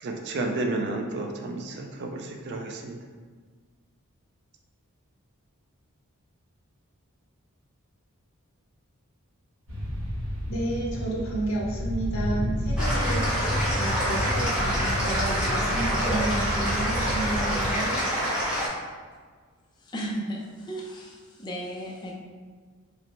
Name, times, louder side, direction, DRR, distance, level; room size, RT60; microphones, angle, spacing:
voice 1, 0.0-3.0, right 2 dB, 50° right, 3 dB, 0.4 m, -31 dB
sound 1, 9.7-17.7, equal, 75° right, 1.1 m, -30 dB
voice 2, 10.5-18.0, right 1 dB, 65° left, -4 dB, 1.0 m, -31 dB
sound 2, 12.8-18.7, equal, 5° right, 0.9 m, -27 dB
voice 3, 19.8-22.1, right 1 dB, 20° left, -3 dB, 0.4 m, -35 dB
5.1 x 2.1 x 3.1 m, 1.5 s
head